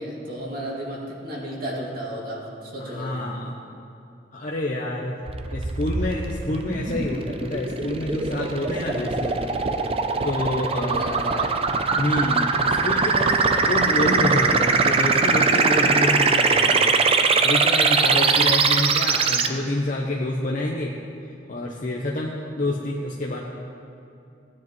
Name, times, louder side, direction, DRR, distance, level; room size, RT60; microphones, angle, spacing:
voice 1, 0.0-3.2 10.8-11.6, right 1 dB, 55° right, -4 dB, 2.3 m, -33 dB
voice 2, 2.8-3.5 4.3-5.2 5.5-9.4 10.2-11.0 11.9-21.0 21.5-23.4, left 1 dB, 50° left, -2 dB, 0.8 m, -28 dB
sound 1, 5.3-19.5, right 4 dB, 35° right, 0.5 m, -21 dB
17.0 x 9.7 x 3.1 m, 2.7 s
head